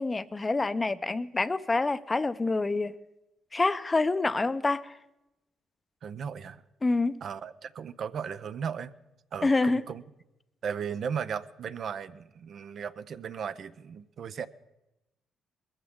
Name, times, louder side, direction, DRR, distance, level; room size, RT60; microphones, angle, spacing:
voice 1, 0.0-2.9 3.5-4.9 6.8-7.2 9.4-9.8, left 3 dB, 25° left, 0.6 m, -27 dB
voice 2, 6.0-6.6 7.2-8.9 9.3-10.0 10.6-14.5, right 7 dB, 60° right, 0.6 m, -36 dB
21.0 x 14.5 x 3.7 m
cardioid pair, 90°, 0 cm